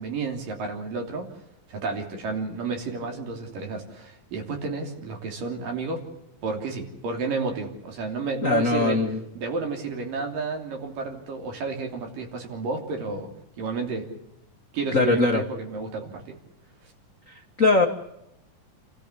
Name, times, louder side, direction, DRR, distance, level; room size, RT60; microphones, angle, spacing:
voice 1, 0.0-1.3 1.7-6.0 6.4-9.0 9.3-13.3 13.6-14.1 14.7-16.4, right 4 dB, 70° right, 3 dB, 4.7 m, -31 dB
voice 2, 8.4-9.2 14.9-15.4 17.3-17.9, left 3 dB, 45° left, 3 dB, 1.0 m, -21 dB
29.5 x 14.0 x 8.3 m, 0.85 s
omnidirectional pair, 4.0 m